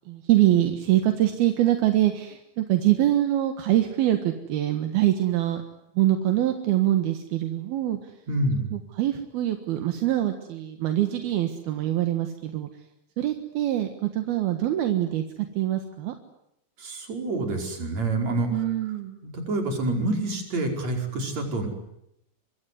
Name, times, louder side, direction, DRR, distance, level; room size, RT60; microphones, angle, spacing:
voice 1, 0.1-5.6 6.0-8.0 8.7-12.7 13.2-15.2 15.6-16.1 18.5-19.2, right 13 dB, 75° right, 6 dB, 3.4 m, -24 dB
voice 2, 8.3-8.7 16.8-18.6 19.3-21.7, right 2 dB, 45° right, 3 dB, 6.1 m, -27 dB
24.5 x 24.0 x 9.7 m, 0.80 s
omnidirectional pair, 4.5 m